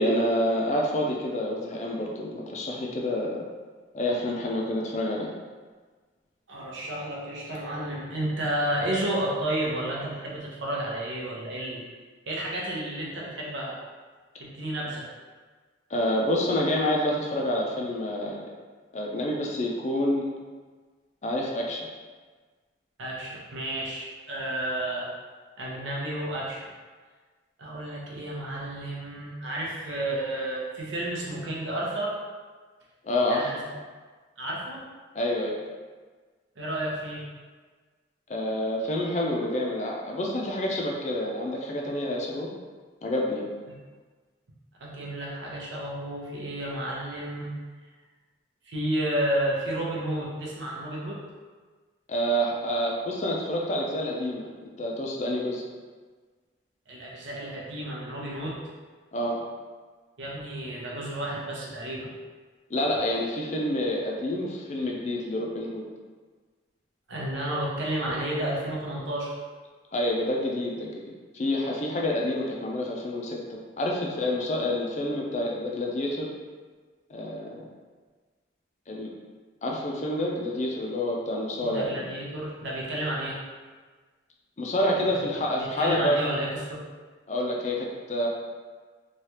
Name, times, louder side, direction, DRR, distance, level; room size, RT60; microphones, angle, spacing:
voice 1, 0.0-3.4 3.9-5.3 15.9-18.5 18.9-20.2 21.2-21.9 33.0-33.5 35.1-35.6 38.3-42.5 43.0-43.4 52.1-55.6 59.1-59.4 62.7-65.8 69.9-70.9 71.3-76.3 77.1-77.6 78.9-79.1 79.6-82.0 84.6-86.2 87.3-88.3, left 1 dB, 35° left, -1 dB, 0.4 m, -28 dB
voice 2, 6.5-11.8 12.2-13.8 14.4-15.1 23.0-25.1 25.6-26.7 27.6-32.2 33.3-33.6 34.4-34.8 36.6-37.2 44.8-47.5 48.7-51.2 56.9-58.6 60.2-62.1 67.1-69.4 81.6-83.4 85.0-86.8, right 1 dB, 80° right, -4 dB, 0.7 m, -31 dB
3.2 x 2.3 x 2.8 m, 1.4 s
head